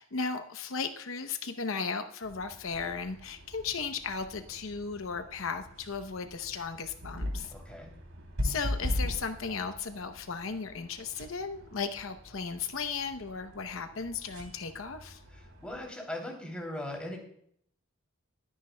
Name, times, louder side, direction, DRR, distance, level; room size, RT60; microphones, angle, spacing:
voice 1, 0.0-7.5 8.4-15.2, left 5 dB, 70° left, 8 dB, 0.8 m, -36 dB
sound 1, 2.2-15.8, left 1 dB, 80° right, 3.0 m, -40 dB
voice 2, 7.5-7.9 15.3-17.2, left 1 dB, 5° left, 0 dB, 2.9 m, -39 dB
21.0 x 9.9 x 2.2 m, 0.66 s
head